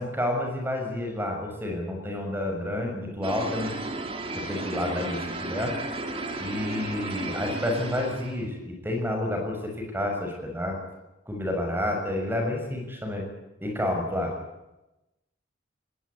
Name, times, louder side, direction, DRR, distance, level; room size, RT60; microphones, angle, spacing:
voice 1, 0.0-3.8 4.3-5.7 6.4-10.8 11.3-13.3 13.6-14.3, left 1 dB, 10° right, 2 dB, 6.6 m, -29 dB
sound 1, 3.2-8.5, right 2 dB, 30° right, 3.0 m, -34 dB
21.0 x 18.5 x 9.7 m, 0.97 s
head